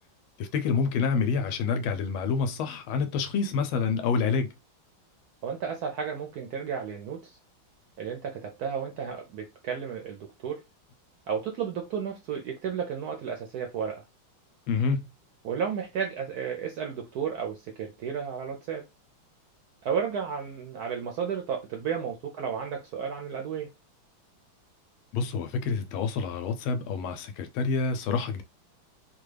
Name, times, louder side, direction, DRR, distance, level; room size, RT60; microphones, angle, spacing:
voice 1, 0.4-4.5 14.7-15.0 25.1-28.4, left 5 dB, 85° left, 1.4 m, -27 dB
voice 2, 5.4-7.4 8.0-10.6 11.3-14.0 15.4-18.9 19.8-23.7, right 7 dB, 75° right, 0.9 m, -33 dB
3.5 x 2.2 x 3.2 m
omnidirectional pair, 2.2 m